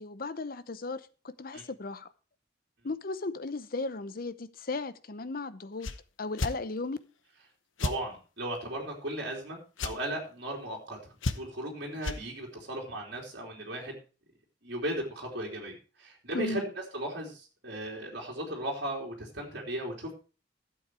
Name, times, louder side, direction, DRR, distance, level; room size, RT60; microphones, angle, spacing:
voice 1, 0.0-2.1 2.8-5.9 6.2-7.0 16.3-16.6, left 3 dB, 50° left, 0.7 m, -36 dB
sound 1, 5.8-6.0 6.4-6.6 7.8-8.0 9.8-10.0 11.2-11.6 12.0-12.2, left 2 dB, 85° left, 1.0 m, -31 dB
voice 2, 7.8-11.0 11.4-14.0 14.6-20.1, right 1 dB, 60° right, 3.3 m, -36 dB
12.0 x 7.9 x 4.7 m
head